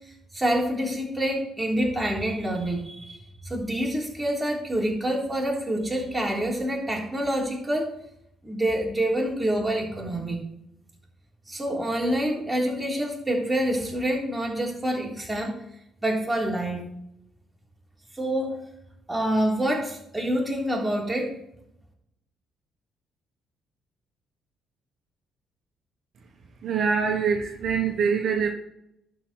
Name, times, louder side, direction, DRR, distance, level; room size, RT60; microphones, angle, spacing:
voice 1, 0.3-7.9 8.4-10.4 11.5-15.6 16.0-16.8 18.1-18.6 19.1-21.3, right 1 dB, 10° right, -2 dB, 3.6 m, -27 dB
voice 2, 26.6-28.5, right 6 dB, 55° right, 2 dB, 1.3 m, -24 dB
11.5 x 5.4 x 4.4 m, 0.77 s
hypercardioid pair, 50°, 0 cm